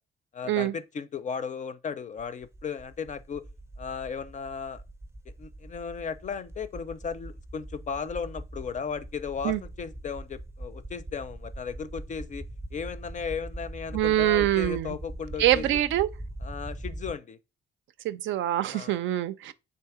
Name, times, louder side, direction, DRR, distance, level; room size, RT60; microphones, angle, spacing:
voice 1, 0.3-3.5 3.8-4.8 5.4-15.8 16.4-17.4 18.7-19.0, left 6 dB, 40° left, 0.4 m, -36 dB
sound 1, 2.2-17.1, right 1 dB, 15° right, 0.5 m, -42 dB
voice 2, 13.9-15.0 15.4-16.1 18.0-19.5, right 13 dB, 75° right, 0.4 m, -25 dB
3.5 x 2.8 x 4.7 m
cardioid pair, 90°, 20 cm